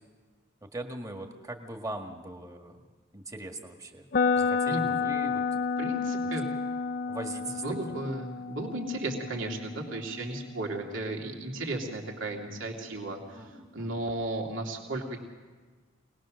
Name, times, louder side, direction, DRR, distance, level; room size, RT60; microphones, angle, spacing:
voice 1, 0.6-2.8 3.1-4.1 4.3-5.7 7.1-8.0 13.3-14.0, right 2 dB, 15° right, 3 dB, 1.7 m, -41 dB
sound 1, 4.1-12.1, left 5 dB, 50° left, 0.6 m, -31 dB
voice 2, 5.8-6.5 7.6-13.4 13.7-15.2, right 2 dB, 70° right, 1 dB, 2.7 m, -34 dB
24.5 x 19.5 x 6.4 m, 1.4 s
head